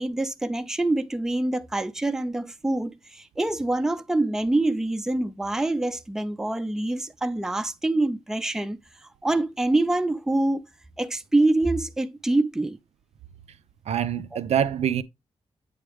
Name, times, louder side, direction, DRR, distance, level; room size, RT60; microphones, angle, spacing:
voice 1, 0.0-8.8 9.2-10.6 11.0-12.8, right 2 dB, 5° right, 0.4 m, -25 dB
voice 2, 13.9-15.0, right 9 dB, 75° right, 0.4 m, -25 dB
8.4 x 3.5 x 3.4 m
wide cardioid pair, 155°, 11 cm